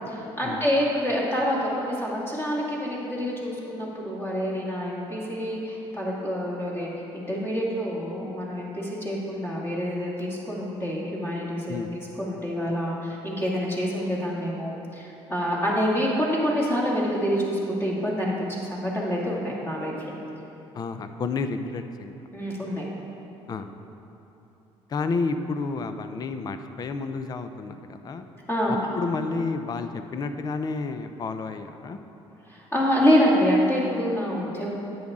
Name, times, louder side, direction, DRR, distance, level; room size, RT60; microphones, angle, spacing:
voice 1, 0.1-20.1 22.3-22.8 28.5-28.8 32.5-34.7, equal, 20° left, -5 dB, 2.3 m, -27 dB
voice 2, 20.7-22.1 23.5-23.7 24.9-28.3 28.7-32.0, left 4 dB, 35° left, 9 dB, 0.5 m, -31 dB
10.0 x 8.6 x 3.7 m, 3.0 s
cardioid pair, 110°, 11 cm